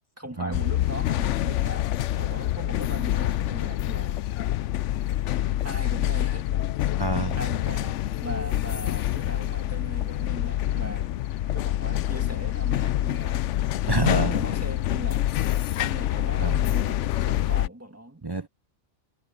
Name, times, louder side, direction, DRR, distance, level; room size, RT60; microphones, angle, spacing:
voice 1, 0.2-1.9 2.2-4.3 4.8-4.9 5.6-6.5 7.4-11.1 11.5-13.5 13.9-15.3 15.8-18.3, right 1 dB, 10° right, 2.0 m, -39 dB
sound 1, 0.5-17.7, left 13 dB, 75° left, 0.9 m, -26 dB
voice 2, 7.0-7.4 13.8-14.4 15.8-15.9 16.4-16.6 18.2-18.5, right 3 dB, 30° right, 0.5 m, -27 dB
omnidirectional pair, 1.3 m